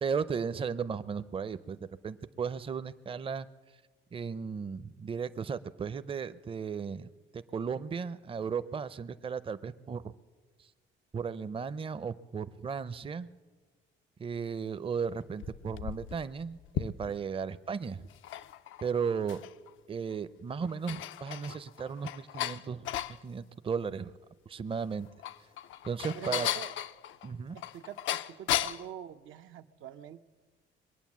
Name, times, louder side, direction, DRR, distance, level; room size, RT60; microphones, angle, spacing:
voice 1, 0.0-1.8 2.0-3.5 4.1-7.1 7.3-10.0 11.1-13.3 14.2-18.1 18.8-19.4 19.9-22.9 23.2-24.1 24.5-25.1 25.8-26.5 27.2-27.6, right 6 dB, 25° right, 13 dB, 0.5 m, -35 dB
sound 1, 15.2-17.4 18.0-19.7 20.1-20.2 20.6-23.2 24.9-28.9, left 12 dB, 80° left, 0.5 m, -36 dB
voice 2, 26.1-26.7 27.5-30.2, right 10 dB, 80° right, 8 dB, 0.7 m, -45 dB
22.0 x 8.8 x 7.3 m, 1.4 s
cardioid pair, 90°, 20 cm